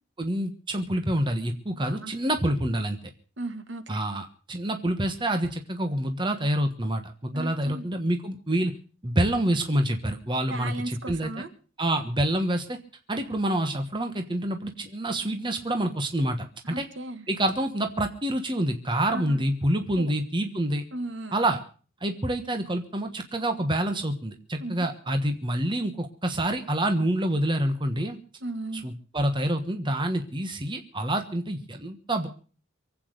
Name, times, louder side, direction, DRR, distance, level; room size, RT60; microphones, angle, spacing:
voice 1, 0.2-3.0 3.9-8.7 9.0-11.3 11.8-12.8 13.1-16.9 17.3-20.8 21.3-21.6 22.0-28.2 28.7-32.3, right 1 dB, 25° right, 6 dB, 1.3 m, -27 dB
voice 2, 1.7-2.1 3.4-4.0 7.3-7.9 10.5-11.5 16.7-17.3 19.1-19.4 20.0-20.1 20.9-21.4 24.6-24.9 28.4-28.9, right 2 dB, 60° right, 10 dB, 1.7 m, -36 dB
23.5 x 8.6 x 6.6 m, 0.40 s
head